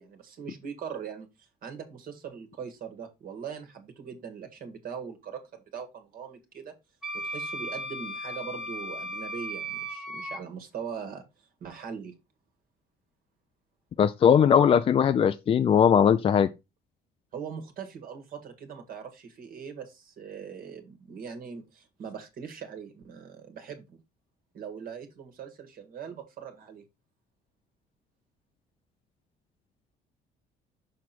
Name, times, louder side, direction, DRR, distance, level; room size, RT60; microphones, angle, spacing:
voice 1, 0.0-6.8 7.1-11.3 11.6-12.2 17.3-24.0 24.5-26.8, right 7 dB, 60° right, 1.6 m, -41 dB
Wind instrument woodwind instrument, 7.0-10.4, right 1 dB, ahead, 0.9 m, -36 dB
voice 2, 14.0-16.5, left 8 dB, 35° left, 0.4 m, -20 dB
6.3 x 4.5 x 4.2 m
cardioid pair, 110°, 17 cm